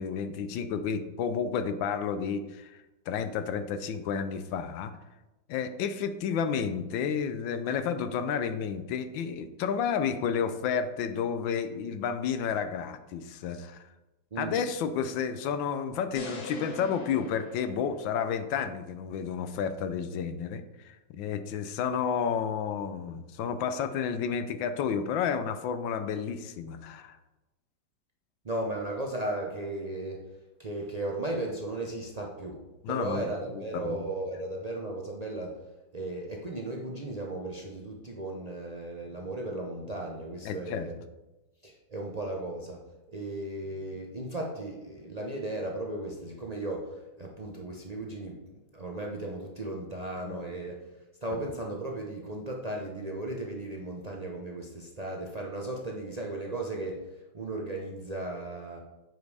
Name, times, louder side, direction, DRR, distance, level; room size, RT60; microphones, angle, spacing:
voice 1, 0.0-2.8 3.1-4.9 5.5-13.8 14.4-27.2 32.8-34.0 40.4-40.9 50.2-50.4, left 7 dB, 80° left, 10 dB, 1.4 m, -31 dB
sound 1, 16.1-18.4, left 2 dB, 65° left, 1.9 m, -42 dB
voice 2, 28.4-30.2 30.6-32.6 32.9-35.6 35.9-41.0 41.6-42.8 43.1-48.4 48.7-50.8 51.2-57.1 57.3-58.8, right 2 dB, 50° right, -1 dB, 0.4 m, -36 dB
7.8 x 5.2 x 4.8 m, 1.0 s
omnidirectional pair, 2.1 m